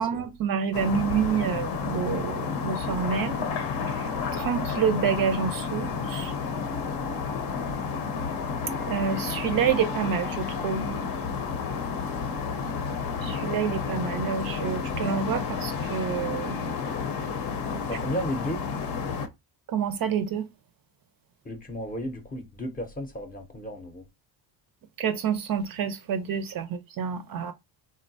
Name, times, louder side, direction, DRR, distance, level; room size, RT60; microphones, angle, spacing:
voice 1, 0.0-3.5 3.9-6.3 8.9-11.0 13.2-16.6 17.7-17.8 19.7-20.4 25.0-27.5, right 7 dB, 50° right, 0.5 m, -28 dB
sound 1, 0.7-19.3, left 5 dB, 55° left, 0.7 m, -31 dB
voice 2, 17.9-18.7 21.4-24.0, equal, 20° left, 0.6 m, -33 dB
3.8 x 2.1 x 2.6 m
cardioid pair, 105°, 48 cm